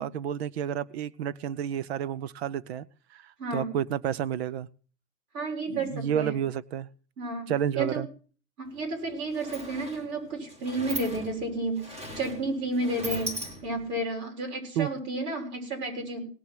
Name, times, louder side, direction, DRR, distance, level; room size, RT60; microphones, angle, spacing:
voice 1, 0.0-2.9 3.1-3.2 3.5-4.7 5.7-6.9 7.5-8.1 14.8-14.9, right 9 dB, 40° right, 19 dB, 0.6 m, -30 dB
voice 2, 3.4-3.7 5.3-6.3 7.2-8.0 8.6-13.3 13.6-16.3, right 2 dB, 75° right, 1 dB, 6.7 m, -31 dB
Sliding door, 8.7-8.8 9.0-14.0, equal, 15° right, 2.1 m, -39 dB
18.0 x 7.1 x 6.0 m, 0.41 s
hypercardioid pair, 140°, 48 cm